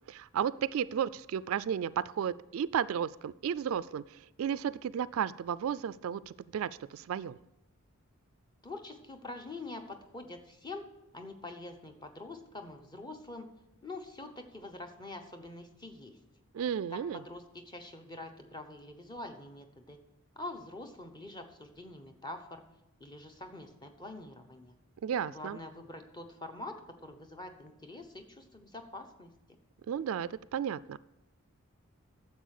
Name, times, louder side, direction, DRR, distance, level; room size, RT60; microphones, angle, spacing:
voice 1, 0.1-7.4 16.5-17.2 25.0-25.6 29.9-31.0, right 8 dB, 70° right, 19 dB, 0.3 m, -33 dB
voice 2, 8.6-10.9 11.1-13.5 13.8-16.2 16.9-20.0 20.4-22.6 23.0-24.8 25.3-29.4, left 2 dB, 20° left, 6 dB, 0.8 m, -45 dB
10.0 x 7.3 x 6.5 m, 0.94 s
head